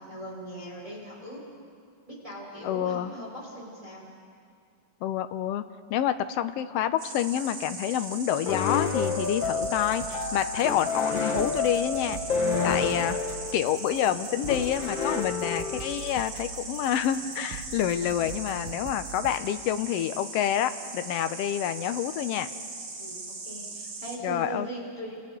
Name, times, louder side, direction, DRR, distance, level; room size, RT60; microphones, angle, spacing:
voice 1, 0.0-1.4 2.1-4.0 23.0-25.2, right 1 dB, 10° right, -5 dB, 4.7 m, -40 dB
voice 2, 2.6-3.1 5.0-5.6 5.9-13.2 13.5-22.5 24.2-24.7, left 10 dB, 80° left, 10 dB, 1.4 m, -28 dB
Insect, 7.0-24.2, right 3 dB, 60° right, 3.6 m, -39 dB
sound 1, 8.5-16.1, left 4 dB, 55° left, 1.5 m, -30 dB
Dangerous World, 8.8-19.4, right 7 dB, 90° right, 2.8 m, -44 dB
30.0 x 28.0 x 3.8 m, 2.3 s
omnidirectional pair, 3.5 m